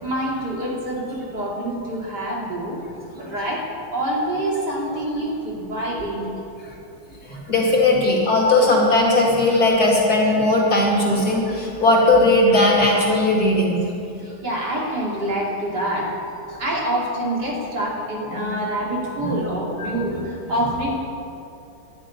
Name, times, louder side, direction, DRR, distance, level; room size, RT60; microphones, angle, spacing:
voice 1, 0.0-2.8 3.1-6.3 14.4-16.1 16.6-21.0, right 1 dB, 50° right, -4 dB, 3.2 m, -26 dB
voice 2, 7.3-13.8 18.3-18.5 19.2-19.3 19.8-20.2, left 2 dB, 45° left, -3 dB, 2.7 m, -18 dB
11.5 x 10.0 x 9.8 m, 2.6 s
omnidirectional pair, 2.3 m